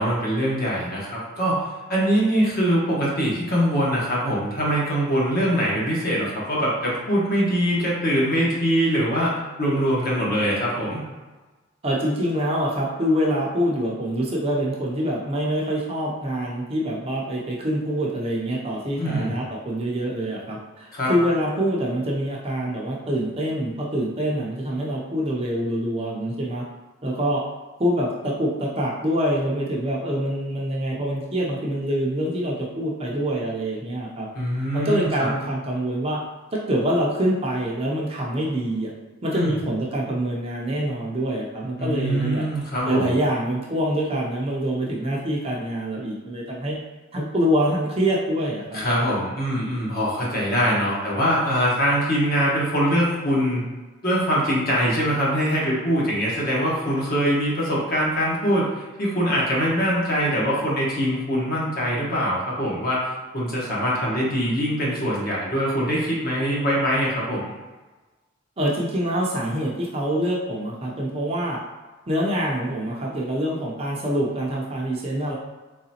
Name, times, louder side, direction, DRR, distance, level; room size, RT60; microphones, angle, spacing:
voice 1, 0.0-1.6 1.9-11.0 19.0-19.4 20.9-21.1 34.3-35.3 39.3-39.5 41.8-43.1 48.7-53.6 54.0-67.5, equal, 45° left, -5 dB, 1.2 m, -23 dB
voice 2, 11.8-26.6 27.0-27.4 27.8-34.3 34.7-36.2 36.5-38.9 39.2-42.5 42.9-46.8 47.1-48.8 68.6-71.6 72.1-75.4, equal, 30° right, -3 dB, 0.5 m, -25 dB
3.9 x 3.2 x 2.8 m, 1.2 s
head